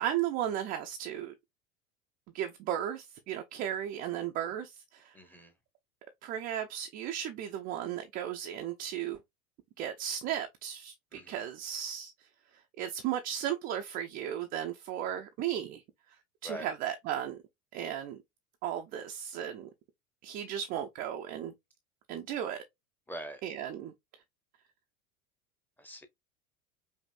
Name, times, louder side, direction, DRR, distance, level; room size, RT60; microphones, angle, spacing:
voice 1, 0.0-1.3 2.3-5.2 6.2-9.2 9.8-12.1 12.5-17.4 17.7-18.2 18.6-19.7 20.2-21.5 22.1-22.6 23.4-23.9, right 10 dB, 20° right, 0.3 m, -35 dB
voice 2, 5.1-5.5 11.1-11.5 16.4-16.7 23.1-23.4 25.8-26.1, right 1 dB, 5° left, 0.7 m, -43 dB
5.3 x 2.5 x 2.5 m
figure-of-eight pair, 80°, 44 cm